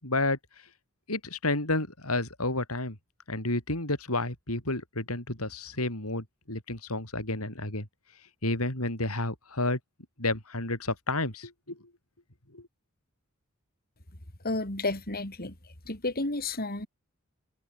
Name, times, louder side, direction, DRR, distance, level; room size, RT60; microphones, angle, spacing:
voice 1, 0.0-0.4 1.1-3.0 3.3-7.9 8.4-9.8 10.2-11.8 12.5-12.7, left 2 dB, 90° left, 7.7 m, -30 dB
voice 2, 14.4-16.9, left 2 dB, 45° left, 4.5 m, -32 dB
head